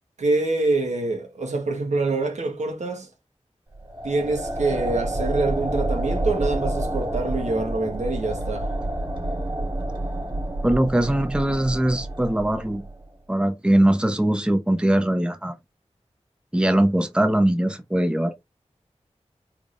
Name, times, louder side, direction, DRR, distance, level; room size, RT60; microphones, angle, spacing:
voice 1, 0.2-3.1 4.0-8.7, right 3 dB, 85° right, 1.2 m, -25 dB
sound 1, 3.7-13.0, right 1 dB, 45° right, 1.7 m, -28 dB
voice 2, 10.6-12.9 13.3-15.6 16.5-18.3, right 1 dB, 10° right, 0.6 m, -21 dB
3.6 x 3.3 x 2.5 m
wide cardioid pair, 65°, 12 cm